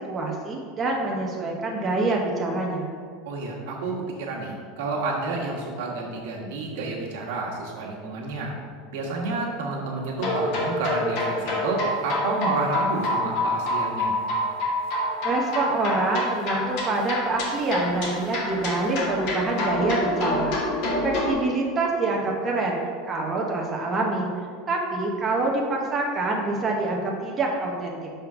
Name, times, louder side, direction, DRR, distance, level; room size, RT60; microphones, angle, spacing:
voice 1, 0.1-2.9 15.2-20.5 21.0-22.8 23.1-24.3 24.7-28.0, right 2 dB, 20° right, -1 dB, 0.8 m, -26 dB
voice 2, 3.2-8.5 8.9-14.1, right 3 dB, 75° right, -2 dB, 1.4 m, -30 dB
sound 1, 10.2-21.3, left 1 dB, 60° left, 1.6 m, -27 dB
5.5 x 3.7 x 5.7 m, 2.1 s
supercardioid pair, 150°, 0 cm